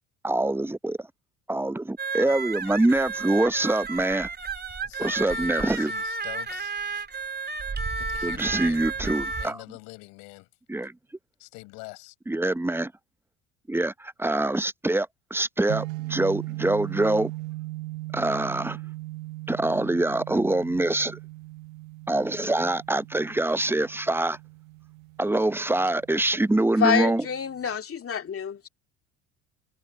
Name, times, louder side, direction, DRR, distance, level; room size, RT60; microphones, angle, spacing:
voice 1, 0.2-1.1 1.5-4.3 5.0-5.9 8.2-9.6 10.7-10.9 12.3-12.9 13.7-17.3 18.1-18.8 19.5-21.2 22.1-24.4 25.2-27.3, right 2 dB, 5° right, 0.8 m, -25 dB
sound 1, 2.0-9.5, right 4 dB, 25° right, 4.3 m, -32 dB
voice 2, 4.8-6.8 8.0-10.5 11.4-12.1, left 29 dB, 70° left, 5.8 m, -45 dB
sound 2, 15.7-27.8, right 22 dB, 75° right, 1.0 m, -39 dB
voice 3, 26.8-28.7, left 7 dB, 35° left, 2.3 m, -27 dB
hypercardioid pair, 70°, 39 cm